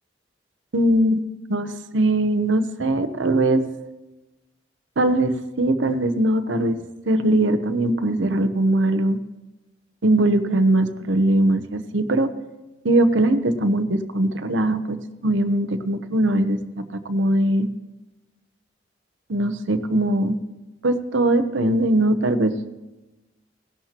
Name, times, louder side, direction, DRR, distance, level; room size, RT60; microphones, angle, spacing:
voice 1, 0.7-1.2 1.5-3.6 5.0-6.8 7.1-9.2 10.0-12.3 12.8-17.7 19.3-20.4 20.8-22.5, right 1 dB, 85° right, 10 dB, 0.8 m, -21 dB
17.5 x 11.5 x 2.9 m, 1.0 s
head